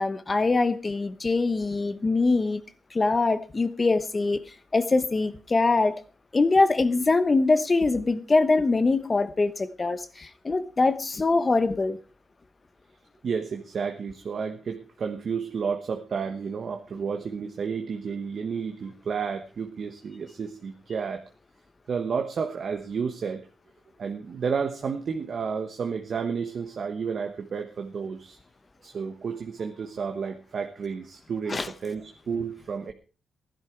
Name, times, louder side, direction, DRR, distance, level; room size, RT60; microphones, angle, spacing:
voice 1, 0.0-2.6 2.9-4.4 4.7-6.0 6.3-12.0 31.5-31.7, left 3 dB, 30° left, 13 dB, 1.0 m, -23 dB
voice 2, 13.2-21.3 21.9-23.5 24.0-28.4 28.8-32.9, right 6 dB, 55° right, 5 dB, 1.2 m, -31 dB
16.0 x 11.0 x 4.7 m, 0.35 s
cardioid pair, 105°, 0 cm